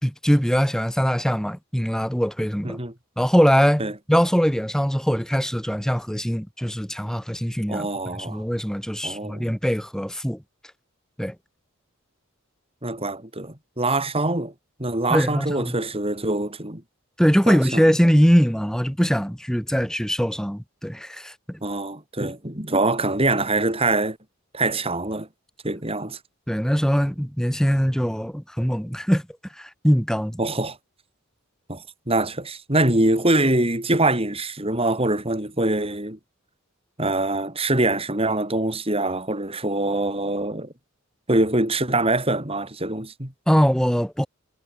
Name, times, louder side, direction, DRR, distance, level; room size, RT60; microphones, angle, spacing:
voice 1, 0.0-2.8 3.2-7.9 8.2-10.4 11.2-11.3 15.1-15.7 17.2-21.6 26.5-29.2 29.6-30.4 43.5-44.3, equal, 5° left, 4.4 m, -22 dB
voice 2, 7.7-8.4 9.0-9.4 12.8-14.5 14.8-16.8 17.5-17.9 21.6-24.2 24.5-25.3 25.6-26.2 30.4-30.8 31.7-36.2 37.0-40.7 41.3-43.3, right 2 dB, 25° right, 4.5 m, -24 dB
head